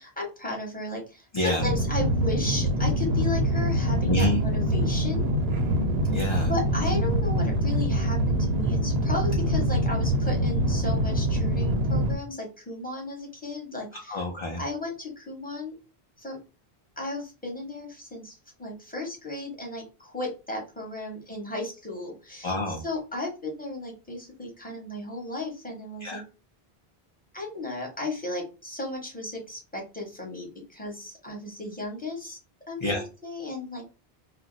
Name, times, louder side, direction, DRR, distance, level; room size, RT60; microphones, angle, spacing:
voice 1, 0.0-5.3 6.5-14.2 14.6-15.7 16.2-16.4 17.0-26.2 27.3-32.4 32.7-33.8, left 2 dB, 10° left, -1 dB, 1.1 m, -35 dB
sound 1, 1.6-12.1, equal, 80° right, 0.8 m, -24 dB
voice 2, 6.1-6.5 13.9-14.6 22.4-22.8 26.0-26.2 32.8-33.0, left 1 dB, 40° left, 0 dB, 0.5 m, -27 dB
2.5 x 2.1 x 3.8 m, 0.31 s
omnidirectional pair, 1.0 m